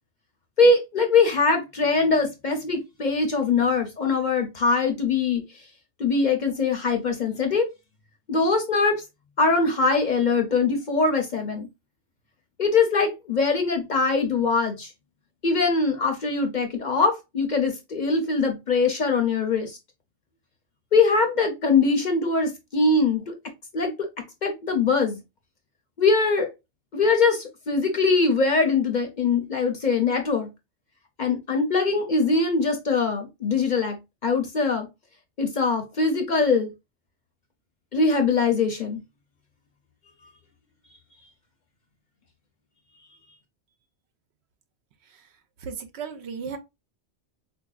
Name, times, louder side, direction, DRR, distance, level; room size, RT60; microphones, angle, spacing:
voice 1, 0.6-5.4 6.0-7.6 8.3-9.0 9.4-11.7 12.6-14.9 15.4-19.8 20.9-23.3 23.7-23.9 24.4-25.2 26.0-26.5 26.9-30.5 31.2-34.9 35.4-36.7 37.9-39.0, left 4 dB, 50° left, 0.6 m, -22 dB
voice 2, 45.6-46.6, right 6 dB, 70° right, 0.8 m, -35 dB
4.1 x 2.6 x 2.3 m
omnidirectional pair, 1.2 m